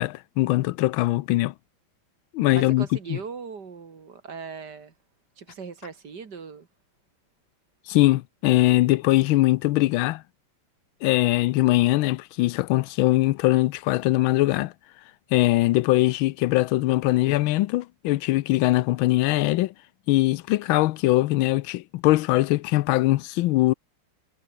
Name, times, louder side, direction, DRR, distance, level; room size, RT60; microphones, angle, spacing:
voice 1, 0.0-1.5 2.3-3.2 7.9-10.2 11.0-14.7 15.3-19.7 20.1-23.7, left 17 dB, 85° left, 1.4 m, -21 dB
voice 2, 2.5-4.9 5.4-6.7, right 5 dB, 55° right, 2.8 m, -39 dB
omnidirectional pair, 2.2 m